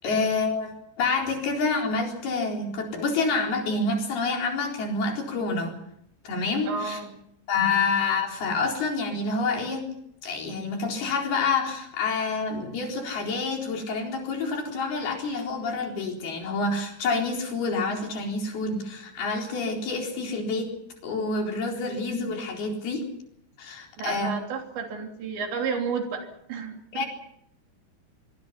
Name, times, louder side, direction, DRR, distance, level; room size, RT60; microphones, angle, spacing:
voice 1, 0.0-5.8 6.2-7.0 7.5-9.9 10.2-20.7 21.0-23.1 23.6-24.3 26.9-27.1, left 4 dB, 55° left, 1 dB, 6.0 m, -28 dB
voice 2, 6.7-7.2 24.0-27.1, right 5 dB, 70° right, 3 dB, 5.3 m, -32 dB
24.5 x 23.0 x 5.9 m, 0.72 s
omnidirectional pair, 5.5 m